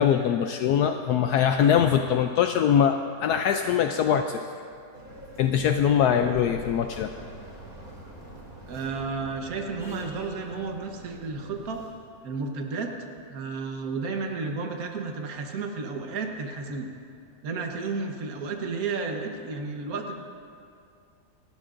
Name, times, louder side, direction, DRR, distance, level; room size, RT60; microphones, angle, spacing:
voice 1, 0.0-4.4 5.4-7.1, left 8 dB, 75° left, 6 dB, 1.1 m, -22 dB
sound 1, 4.9-11.9, right 1 dB, 35° right, 3.0 m, -45 dB
voice 2, 8.7-11.8 12.2-12.9 13.3-16.9 17.4-20.1, right 4 dB, 60° right, 2 dB, 1.6 m, -32 dB
29.0 x 12.0 x 2.6 m, 2.3 s
omnidirectional pair, 1.8 m